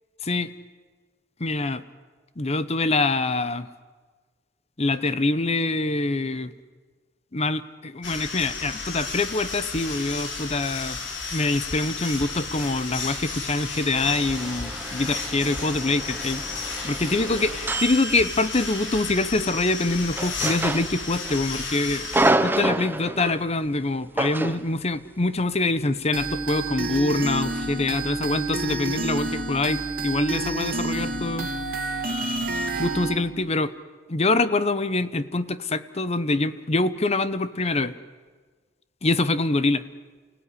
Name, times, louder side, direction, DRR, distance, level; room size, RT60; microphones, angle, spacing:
voice 1, 1.4-1.8 2.4-3.7 4.8-6.5 7.3-11.0 11.3-16.4 16.8-31.5 32.8-33.7 34.1-37.9 39.0-39.8, left 2 dB, 35° left, 14 dB, 0.9 m, -25 dB
sound 1, 8.0-22.3, left 4 dB, 75° left, 4.2 m, -33 dB
sound 2, 14.0-18.9 20.1-21.4 21.7-23.4 24.2-24.7, right 2 dB, 10° right, 0.8 m, -28 dB
sound 3, 26.1-33.2, right 3 dB, 50° right, 2.5 m, -29 dB
29.5 x 17.0 x 10.0 m, 1.4 s
head